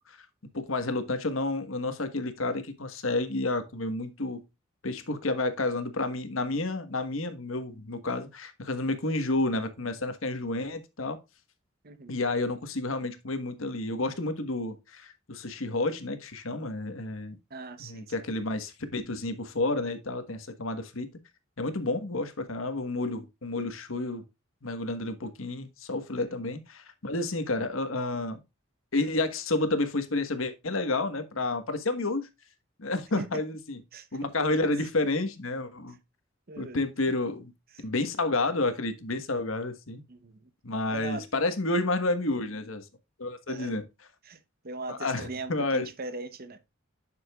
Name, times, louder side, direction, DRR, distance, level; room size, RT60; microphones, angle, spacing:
voice 1, 0.5-4.4 4.8-11.2 12.1-17.4 17.8-21.1 21.6-24.2 24.6-28.4 28.9-32.3 32.8-33.8 34.1-36.0 36.6-37.5 37.8-40.0 40.6-42.8 43.2-43.8 44.9-45.9, left 2 dB, 90° left, 1.4 m, -30 dB
voice 2, 17.5-18.1 33.2-33.3 33.9-34.7 36.5-36.8 37.7-37.8 40.1-40.5 40.9-41.3 43.5-43.7 44.2-44.4 44.6-46.7, right 2 dB, 50° right, 0.9 m, -40 dB
9.8 x 6.8 x 2.4 m
head